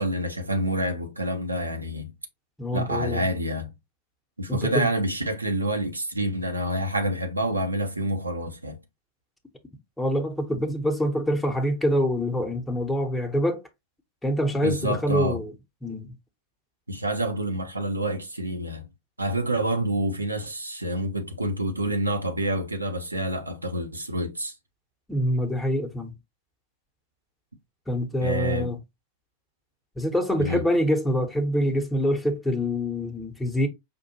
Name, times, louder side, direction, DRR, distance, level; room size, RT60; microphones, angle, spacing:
voice 1, 0.0-2.1 2.7-3.7 4.4-8.8 14.6-15.4 16.9-18.9 19.2-24.5 28.2-28.7 30.4-30.6, right 1 dB, 80° right, 0.7 m, -27 dB
voice 2, 2.6-3.2 4.5-4.9 10.0-13.6 14.2-15.5 15.8-16.1 25.1-26.1 27.9-28.8 30.0-33.7, equal, 5° left, 0.8 m, -25 dB
5.1 x 2.4 x 2.8 m
figure-of-eight pair, 90°, 0 cm